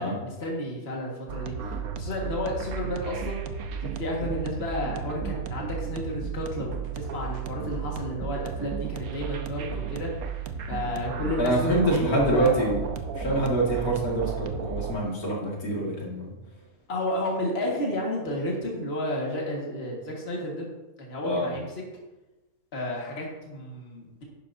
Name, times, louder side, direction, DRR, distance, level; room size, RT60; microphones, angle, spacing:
voice 1, 0.0-3.4 3.8-10.1 10.7-12.6 16.9-20.7 21.0-21.7 22.7-24.2, left 1 dB, 45° left, -2 dB, 2.0 m, -31 dB
sound 1, 1.3-15.0, right 6 dB, 80° right, 1.2 m, -34 dB
voice 2, 11.4-12.8 13.1-16.3 21.2-21.5, right 1 dB, 85° left, -3 dB, 2.7 m, -25 dB
11.0 x 9.8 x 2.7 m, 1.1 s
omnidirectional pair, 1.5 m